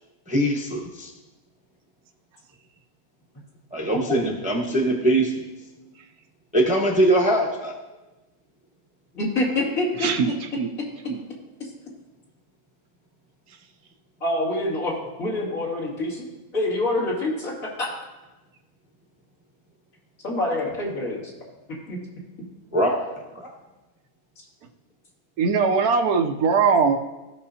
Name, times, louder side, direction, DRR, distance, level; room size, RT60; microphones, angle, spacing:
voice 1, 0.3-1.1 3.7-5.4 6.5-7.7 22.7-23.5, right 1 dB, 5° right, -1 dB, 1.0 m, -22 dB
voice 2, 9.1-10.3 14.2-16.2 16.5-17.9 20.2-21.2 21.9-22.0, left 2 dB, 60° left, -6 dB, 3.0 m, -26 dB
voice 3, 10.0-10.7 11.1-11.2 25.4-27.0, right 5 dB, 75° right, 5 dB, 1.3 m, -21 dB
17.0 x 6.2 x 2.8 m, 1.1 s
omnidirectional pair, 1.6 m